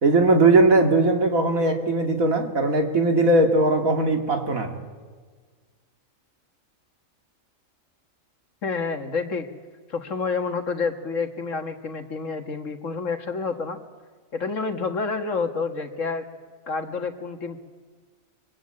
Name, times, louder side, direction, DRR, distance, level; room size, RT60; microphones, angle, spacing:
voice 1, 0.0-4.8, right 2 dB, 85° right, 3 dB, 2.9 m, -19 dB
voice 2, 8.6-9.5 9.9-13.8 14.3-16.3 16.7-17.6, left 4 dB, 65° left, 5 dB, 2.1 m, -28 dB
24.5 x 24.5 x 8.7 m, 1.5 s
omnidirectional pair, 1.4 m